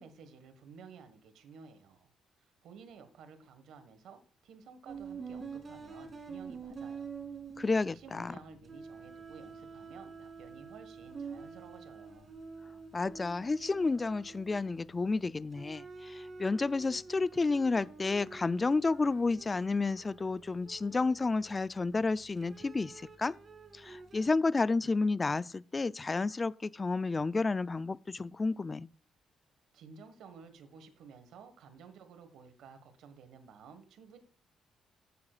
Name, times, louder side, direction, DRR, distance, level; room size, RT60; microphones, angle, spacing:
voice 1, 0.0-2.1 2.6-7.2 7.9-12.3 29.7-34.2, right 5 dB, 80° right, 1.5 m, -53 dB
sound 1, 4.9-8.3 8.6-15.1 15.5-21.8 22.4-24.3, right 5 dB, 40° right, 2.6 m, -47 dB
voice 2, 7.6-8.4 12.9-23.3 23.7-28.9, left 3 dB, 25° left, 0.4 m, -31 dB
14.5 x 8.5 x 2.4 m
cardioid pair, 90°, 0 cm